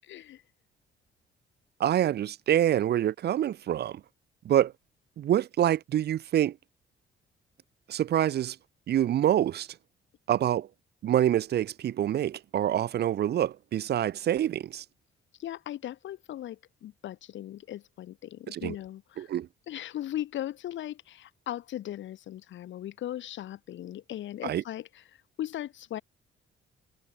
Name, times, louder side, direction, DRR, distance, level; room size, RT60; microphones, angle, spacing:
voice 1, 0.0-0.4 15.4-19.3 19.7-25.0 25.4-26.0, left 12 dB, 70° left, 1.3 m, -38 dB
voice 2, 1.8-3.9 4.5-4.7 5.2-6.5 7.9-8.5 8.9-9.7 10.3-10.7 11.0-14.8 18.5-18.7 19.2-19.5 24.4-24.6, right 11 dB, 55° right, 0.5 m, -26 dB
cardioid pair, 90°, 20 cm